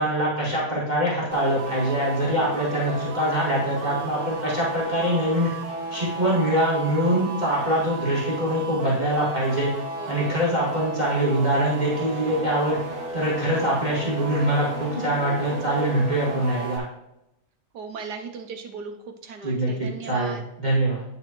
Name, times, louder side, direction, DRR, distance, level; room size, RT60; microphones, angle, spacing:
voice 1, 0.0-5.5 5.9-9.7 10.1-12.8 13.1-16.9 19.4-21.0, right 1 dB, 20° right, -7 dB, 2.0 m, -24 dB
sound 1, 1.3-16.8, right 2 dB, 55° right, 1.7 m, -34 dB
voice 2, 9.9-10.4 17.7-19.0 19.2-20.4, right 5 dB, 70° right, 5 dB, 1.0 m, -37 dB
9.5 x 6.6 x 3.0 m, 0.88 s
omnidirectional pair, 2.3 m